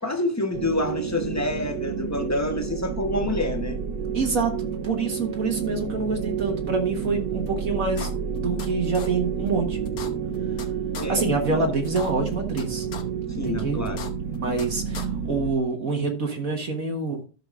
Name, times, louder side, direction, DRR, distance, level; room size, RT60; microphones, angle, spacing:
voice 1, 0.0-3.8 11.0-11.6 13.4-14.1, left 2 dB, 15° left, 0.7 m, -27 dB
sound 1, 0.5-15.5, right 7 dB, 80° right, 1.4 m, -30 dB
voice 2, 4.1-9.8 11.1-12.9 13.4-13.8 14.3-17.2, right 4 dB, 55° right, 1.6 m, -26 dB
sound 2, 7.5-7.6 8.0-8.7 8.9-9.1 9.5-9.6 9.8-10.7 10.9-11.1 11.5-11.6 11.8-12.6 12.9-13.0 13.5-13.6 13.8-14.7 14.9-15.1, left 5 dB, 60° left, 1.5 m, -37 dB
13.0 x 6.6 x 2.4 m
omnidirectional pair, 1.8 m